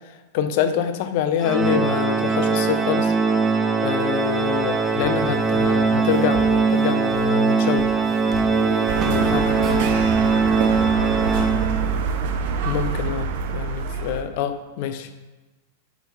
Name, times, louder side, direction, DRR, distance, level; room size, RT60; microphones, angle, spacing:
voice 1, 0.3-3.1 3.8-7.9 9.1-9.5 12.7-15.3, left 8 dB, 55° left, 10 dB, 0.6 m, -26 dB
Organ, 1.4-12.1, right 4 dB, 15° right, 0.5 m, -21 dB
Walk footsteps, 4.1-12.3, right 1 dB, 30° right, 1.0 m, -39 dB
voice 2, 8.5-11.4, right 2 dB, 90° right, 5 dB, 0.7 m, -36 dB
sound 1, 8.9-14.2, right 5 dB, 55° right, 0.6 m, -26 dB
10.0 x 3.6 x 3.7 m, 1.2 s
figure-of-eight pair, 95°, 0 cm